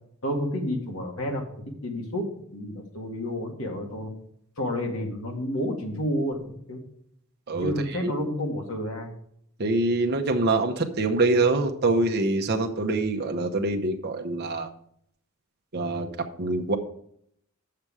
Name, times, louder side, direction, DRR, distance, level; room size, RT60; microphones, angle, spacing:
voice 1, 0.2-1.4 1.8-4.1 4.6-6.8 7.6-9.1, equal, 75° left, 1 dB, 2.0 m, -30 dB
voice 2, 9.6-14.7 15.7-16.1 16.4-16.8, right 2 dB, 50° right, 3 dB, 0.8 m, -24 dB
8.7 x 6.7 x 4.8 m, 0.69 s
head